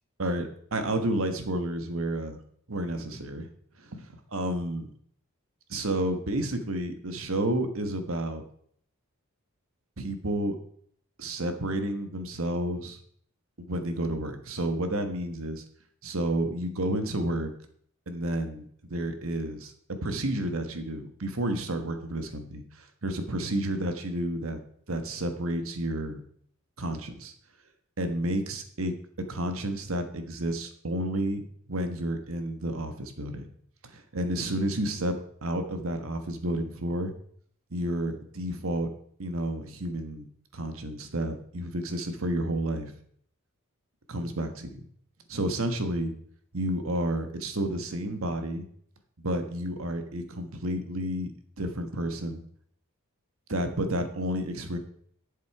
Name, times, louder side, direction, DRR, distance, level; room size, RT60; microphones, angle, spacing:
voice 1, 0.2-2.4 2.7-3.5 3.8-4.9 5.7-8.4 10.0-10.6 11.2-13.0 13.6-15.6 16.0-17.5 18.1-19.7 20.0-24.6 24.9-26.2 26.8-27.3 28.0-33.5 33.8-35.2 35.4-37.1 37.7-38.9 39.2-40.3 40.5-42.9 44.1-44.8 45.3-46.1 46.5-48.7 49.2-52.4 53.5-54.8, right 1 dB, 70° right, 7 dB, 1.5 m, -31 dB
11.0 x 7.4 x 4.8 m, 0.62 s
head